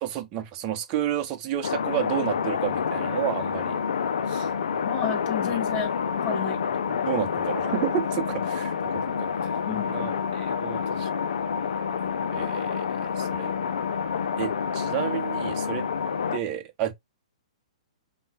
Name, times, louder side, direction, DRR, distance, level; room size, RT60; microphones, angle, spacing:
voice 1, 0.0-3.8 4.3-4.5 5.5-5.6 7.1-11.1 12.3-13.5 14.4-15.9 16.3-16.9, right 11 dB, 35° right, 1.1 m, -31 dB
sound 1, 1.6-16.4, left 6 dB, 75° left, 0.7 m, -28 dB
voice 2, 4.8-6.6 6.9-7.1 9.7-10.1, left 7 dB, 30° left, 2.1 m, -32 dB
5.6 x 3.1 x 2.5 m
hypercardioid pair, 130°, 4 cm